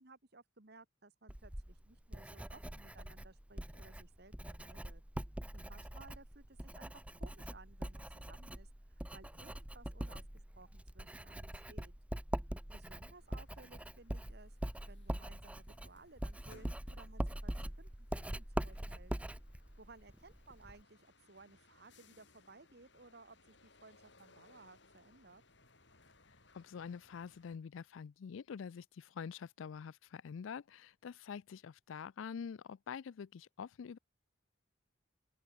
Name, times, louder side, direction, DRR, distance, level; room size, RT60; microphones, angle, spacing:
voice 1, 0.0-5.0 5.5-11.9 12.7-14.6 14.9-19.1 19.8-25.4, right 3 dB, 55° right, 2.0 m, -59 dB
Writing, 1.3-20.8, right 1 dB, 5° right, 0.6 m, -43 dB
sound 1, 13.1-27.6, left 3 dB, 60° left, 6.8 m, -67 dB
voice 2, 26.5-34.0, left 6 dB, 85° left, 0.4 m, -46 dB
open air
head